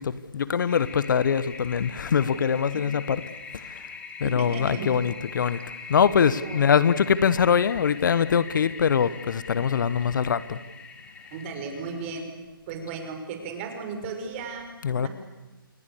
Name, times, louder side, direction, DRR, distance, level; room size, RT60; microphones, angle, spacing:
voice 1, 0.0-3.2 3.5-3.9 4.2-5.6 5.9-10.6 14.8-15.1, left 7 dB, 60° left, 17 dB, 1.1 m, -23 dB
Toilet flush, 0.7-12.2, left 5 dB, 10° left, 2.2 m, -42 dB
voice 2, 4.2-4.9 6.4-6.7 11.3-12.3 12.7-15.1, right 4 dB, 35° right, 4 dB, 5.8 m, -35 dB
28.5 x 20.0 x 7.0 m, 1.2 s
figure-of-eight pair, 140°, 12 cm